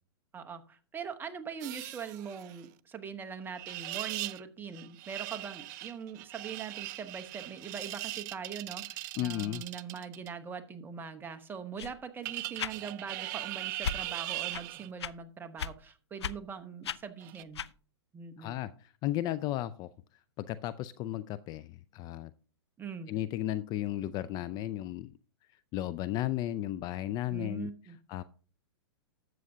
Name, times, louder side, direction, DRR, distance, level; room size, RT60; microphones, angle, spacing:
voice 1, 0.3-17.6 18.1-18.6 22.8-23.1 27.3-28.0, right 6 dB, 15° right, 8 dB, 0.9 m, -42 dB
sound 1, 1.6-2.6 3.5-4.4 4.7-10.3 12.2-14.9 17.2-17.4, right 16 dB, 45° right, 0.4 m, -40 dB
voice 2, 9.2-9.6 18.4-19.9 20.4-22.3 23.1-25.1 25.7-27.7 28.1-28.2, left 13 dB, 30° left, 17 dB, 0.4 m, -34 dB
sound 2, 11.8-12.0 12.6-12.8 13.8-14.0 14.5-14.7 15.0-15.1 15.6-15.7 16.2-16.4 16.8-17.0 17.5-17.7, left 8 dB, 85° left, 0.5 m, -35 dB
12.5 x 7.7 x 2.7 m, 0.38 s
hypercardioid pair, 125°, 14 cm